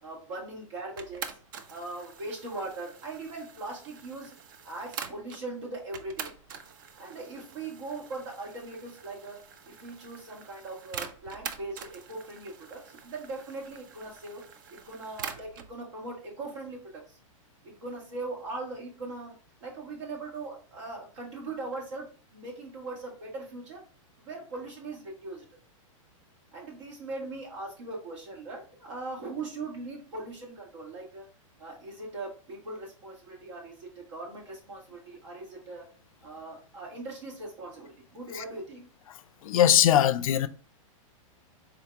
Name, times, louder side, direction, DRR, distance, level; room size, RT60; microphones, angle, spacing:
voice 1, 0.0-1.3 1.7-4.3 4.6-6.3 7.0-9.4 9.6-14.4 14.7-17.2 17.6-22.0 22.3-23.8 24.2-25.4 26.5-31.3 31.6-35.9 36.2-38.9, right 2 dB, 65° right, 1.6 m, -40 dB
sound 1, 1.0-5.4 5.9-15.7, right 7 dB, 40° right, 0.3 m, -44 dB
voice 2, 39.4-40.5, left 10 dB, 85° left, 0.4 m, -21 dB
3.9 x 2.8 x 3.4 m
supercardioid pair, 170°, 17 cm